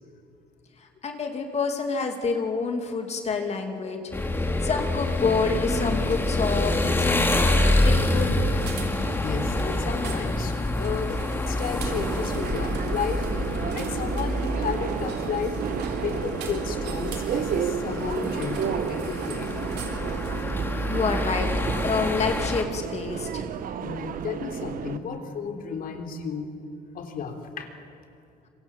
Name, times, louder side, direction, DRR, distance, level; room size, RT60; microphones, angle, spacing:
voice 1, 0.8-4.1 4.6-7.4 7.8-8.4 20.9-21.5 21.8-23.5, left 4 dB, 40° left, 4 dB, 2.6 m, -28 dB
sound 1, 4.1-22.6, left 1 dB, 15° left, 2.3 m, -27 dB
Robot Assembly, 6.1-20.4, right 6 dB, 75° right, 3.9 m, -43 dB
voice 2, 9.2-13.3 13.7-15.6 16.0-19.5 23.8-26.5 26.9-28.0, left 6 dB, 60° left, 5 dB, 3.4 m, -33 dB
Subway metro underground, 11.8-25.0, right 7 dB, 55° right, 1.3 m, -32 dB
26.5 x 24.0 x 7.3 m, 2.5 s
cardioid pair, 110°, 17 cm